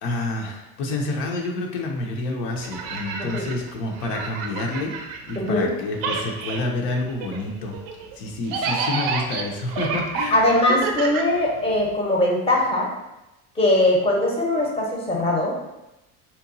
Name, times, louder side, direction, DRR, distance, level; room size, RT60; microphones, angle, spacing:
voice 1, 0.0-5.0 5.3-7.8 8.2-10.4, left 2 dB, 75° left, 1 dB, 0.6 m, -28 dB
sound 1, 2.6-5.7 5.9-11.9, right 5 dB, 80° right, 0.5 m, -30 dB
voice 2, 5.4-5.7 10.3-12.9 13.6-15.5, left 1 dB, 15° left, -2 dB, 0.7 m, -21 dB
2.8 x 2.2 x 2.5 m, 0.95 s
supercardioid pair, 80°, 43 cm